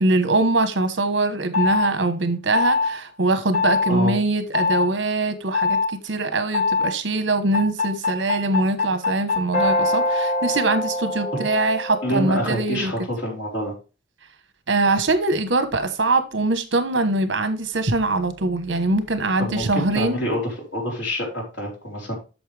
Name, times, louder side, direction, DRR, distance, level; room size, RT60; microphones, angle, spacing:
voice 1, 0.0-12.9 14.7-20.2, right 2 dB, 75° right, 1.1 m, -22 dB
sound 1, 1.5-1.9 2.5-2.9 3.5-3.9 4.5-4.9 5.5-5.9 6.5-6.9 7.5-12.6, left 3 dB, 55° left, 5.5 m, -23 dB
voice 2, 12.0-13.7 19.4-22.2, equal, 75° left, 4.0 m, -27 dB
8.6 x 6.5 x 3.4 m
head